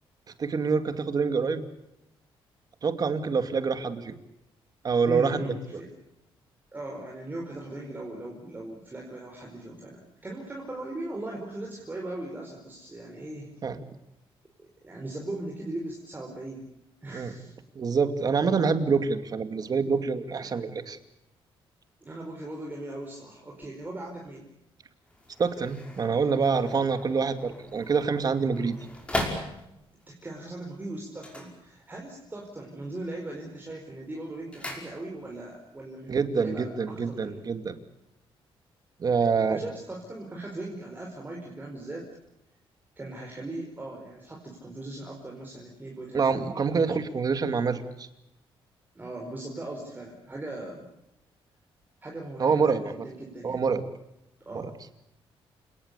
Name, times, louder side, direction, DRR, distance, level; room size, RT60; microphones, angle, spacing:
voice 1, 0.4-1.7 2.8-4.1 4.8-5.5 13.6-13.8 17.1-17.3 17.7-21.0 25.4-28.8 36.1-37.7 39.0-39.6 46.1-48.1 52.4-52.8 53.4-53.8 54.5-54.7, right 5 dB, 40° right, 9 dB, 2.5 m, -26 dB
voice 2, 5.0-5.9 6.7-13.5 14.8-16.7 17.0-17.5 20.4-20.6 22.0-24.5 30.1-37.4 39.5-42.1 43.0-47.0 48.9-50.9 52.0-53.6 54.4-54.7, right 2 dB, 20° right, 0 dB, 4.8 m, -39 dB
sound 1, 25.0-30.1 31.1-32.2 32.5-33.0 33.4-35.5 35.7-35.8, left 1 dB, 10° left, 5.5 m, -38 dB
28.5 x 19.0 x 8.4 m, 0.87 s
cardioid pair, 130°, 10 cm